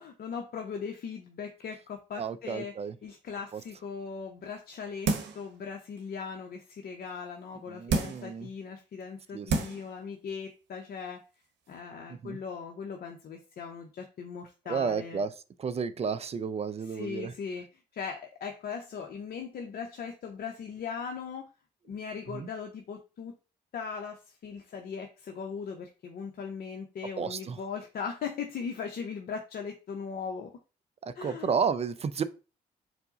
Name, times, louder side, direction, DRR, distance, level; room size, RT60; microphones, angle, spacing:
voice 1, 0.0-2.8 3.0-11.2 11.7-15.2 16.9-17.7 17.9-21.5 21.9-23.3 23.7-30.5 31.1-31.6, left 6 dB, 45° left, 0.6 m, -39 dB
voice 2, 2.2-3.0 3.5-3.6 7.7-8.5 9.3-9.6 12.2-12.4 14.7-15.3 15.6-17.3 22.3-22.5 27.2-27.6 31.0-32.2, right 6 dB, 30° right, 0.4 m, -32 dB
sound 1, 5.1-5.5 6.0-6.1 7.9-8.3 9.0-9.1 9.5-9.9 10.3-10.4, right 3 dB, 55° right, 0.8 m, -29 dB
4.3 x 2.1 x 3.8 m
figure-of-eight pair, 40°, 21 cm